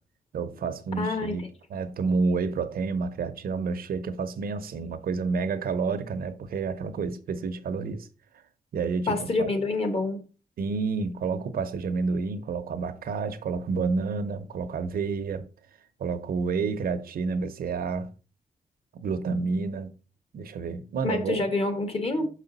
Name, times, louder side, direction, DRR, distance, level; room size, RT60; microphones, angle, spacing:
voice 1, 0.3-8.1 8.7-9.5 10.6-15.5 16.0-18.1 19.0-19.9 20.3-21.4, right 4 dB, 75° right, 0.7 m, -29 dB
voice 2, 1.0-1.5 9.1-10.2 21.0-22.3, left 3 dB, 40° left, 1.4 m, -27 dB
6.2 x 5.0 x 4.0 m
wide cardioid pair, 115°, 15 cm